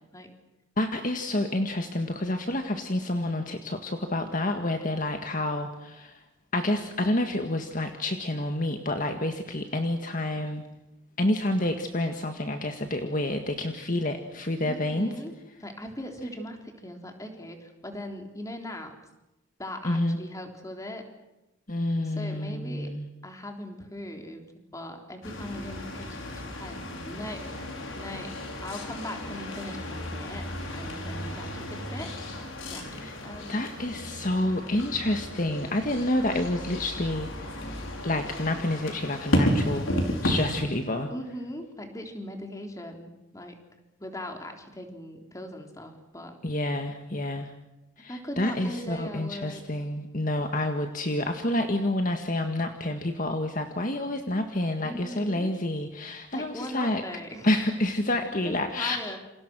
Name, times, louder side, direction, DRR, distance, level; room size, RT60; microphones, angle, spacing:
voice 1, 0.8-6.2 6.5-10.6 11.2-15.1 19.8-20.2 21.7-23.1 32.9-33.1 33.5-37.7 38.0-39.9 40.2-41.1 46.4-47.5 48.0-57.0 57.4-59.0, left 1 dB, 40° left, 5 dB, 1.8 m, -28 dB
voice 2, 14.6-15.3 15.6-18.9 19.6-21.0 22.0-22.9 23.2-24.4 24.7-27.4 28.0-28.3 28.6-32.1 32.7-32.9 33.2-33.7 41.1-43.6 44.0-46.4 48.1-49.7 54.8-55.5 56.3-57.5 58.4-59.2, left 1 dB, 15° left, 4 dB, 3.6 m, -39 dB
sound 1, 25.2-40.6, equal, 80° left, 5.2 m, -33 dB
29.0 x 27.5 x 6.3 m, 0.98 s
head